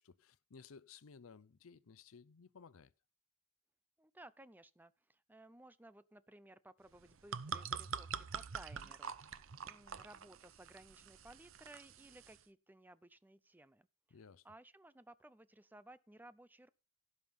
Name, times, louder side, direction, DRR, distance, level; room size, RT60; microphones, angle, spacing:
voice 1, 0.0-2.9 14.1-14.4, left 5 dB, 70° left, 0.6 m, -58 dB
voice 2, 4.0-14.2 14.4-16.7, right 1 dB, 10° right, 0.5 m, -59 dB
sound 1, 6.9-12.4, right 7 dB, 60° right, 0.7 m, -45 dB
16.0 x 5.7 x 5.4 m
head